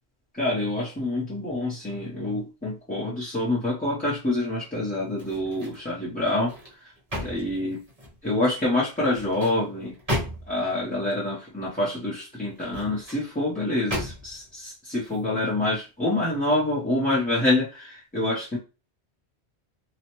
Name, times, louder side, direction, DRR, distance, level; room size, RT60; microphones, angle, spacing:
voice 1, 0.3-6.5 7.2-7.8 8.2-9.9 10.5-18.6, left 2 dB, 10° left, -8 dB, 0.6 m, -26 dB
sound 1, 5.1-5.9 6.3-8.2 9.0-10.7 12.5-13.2 13.9-14.5 15.0-15.2, equal, 35° right, 1.1 m, -34 dB
3.0 x 2.1 x 2.9 m, 0.30 s
omnidirectional pair, 1.1 m